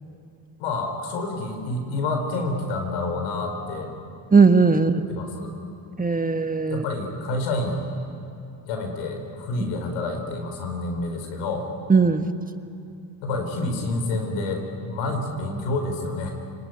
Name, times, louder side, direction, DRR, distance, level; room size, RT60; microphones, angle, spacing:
voice 1, 0.6-3.9 5.2-5.5 6.7-7.8 8.6-11.7 13.2-16.4, left 2 dB, 75° left, 4 dB, 4.6 m, -28 dB
voice 2, 4.3-5.1 6.0-6.8 11.9-12.3, right 4 dB, 15° right, 8 dB, 1.5 m, -18 dB
28.5 x 19.5 x 9.5 m, 2.5 s
hypercardioid pair, 60°, 49 cm